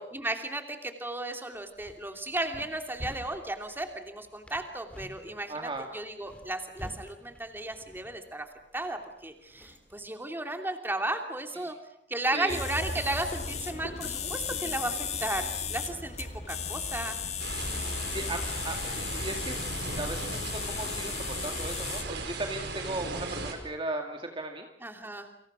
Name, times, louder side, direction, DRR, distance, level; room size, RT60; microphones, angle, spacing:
voice 1, 0.0-8.5 8.7-11.7 12.1-17.2 24.8-25.3, right 2 dB, 10° right, 5 dB, 3.0 m, -34 dB
sound 1, 1.5-10.1, equal, 5° left, 3.5 m, -49 dB
voice 2, 5.5-5.9 11.6-11.7 12.3-12.6 18.1-19.6 20.0-24.7, right 2 dB, 30° right, 3 dB, 2.2 m, -36 dB
sound 2, 12.5-22.0, left 6 dB, 40° left, 2.2 m, -35 dB
sound 3, 17.4-23.5, right 2 dB, 65° right, 5.1 m, -37 dB
29.5 x 26.5 x 6.3 m, 0.73 s
head